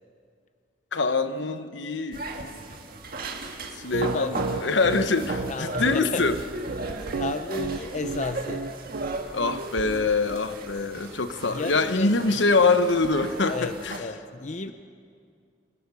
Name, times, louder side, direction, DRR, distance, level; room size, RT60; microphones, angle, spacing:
voice 1, 0.9-2.6 3.7-6.3 9.3-14.0, left 3 dB, 75° left, 10 dB, 1.0 m, -24 dB
sound 1, 2.1-14.0, right 2 dB, 55° right, 1.8 m, -36 dB
voice 2, 3.9-4.5 5.5-6.2 7.1-8.7 11.5-12.2 13.5-14.7, left 3 dB, 40° left, 9 dB, 0.7 m, -33 dB
Piano, 3.9-10.4, right 4 dB, 80° right, 0.5 m, -32 dB
sound 2, 8.0-11.3, left 1 dB, 25° left, 4.9 m, -48 dB
27.0 x 17.0 x 7.0 m, 2.2 s
head